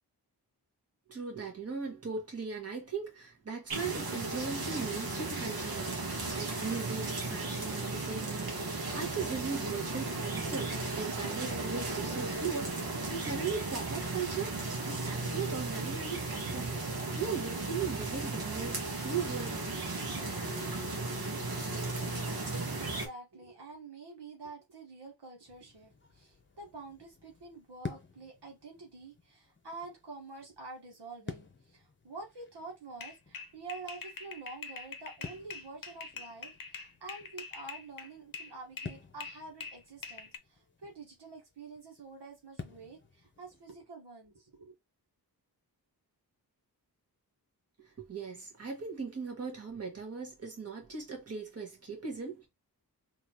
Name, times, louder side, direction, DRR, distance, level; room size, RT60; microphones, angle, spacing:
voice 1, 1.1-20.2 47.8-52.5, right 5 dB, 35° right, 1.7 m, -39 dB
sound 1, 3.7-23.1, right 3 dB, 65° right, 1.3 m, -35 dB
voice 2, 22.7-44.7, right 3 dB, 80° right, 1.5 m, -48 dB
sound 2, 25.5-43.8, left 4 dB, 30° left, 0.9 m, -51 dB
sound 3, 33.0-38.5 38.8-40.4, left 5 dB, 55° left, 0.7 m, -44 dB
3.7 x 2.9 x 2.9 m
wide cardioid pair, 85°, 40 cm